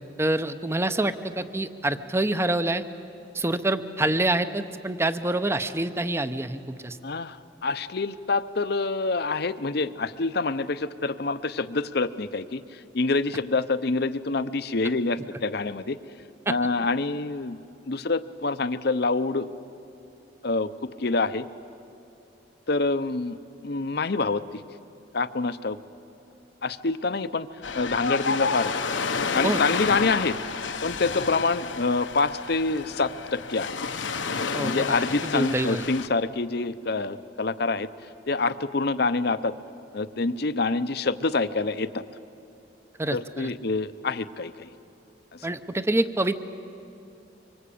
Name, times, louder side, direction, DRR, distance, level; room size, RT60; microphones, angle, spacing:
voice 1, 0.2-2.8 3.3-7.0 16.5-16.6 29.4-29.6 34.5-35.8 43.0-43.5 45.4-46.4, right 1 dB, 15° right, 11 dB, 0.7 m, -26 dB
voice 2, 7.0-7.4 7.6-16.0 16.5-19.5 20.4-20.7 21.0-21.5 22.7-23.4 23.6-24.6 25.1-25.8 26.6-27.5 27.7-28.7 29.3-30.4 30.8-33.8 34.6-37.9 38.3-39.5 39.9-42.0 43.1-44.7 45.3-45.5, left 3 dB, 60° left, 13 dB, 0.8 m, -26 dB
Ocean, 27.6-36.1, left 4 dB, 85° left, 1.1 m, -30 dB
25.0 x 25.0 x 8.6 m, 2.7 s
head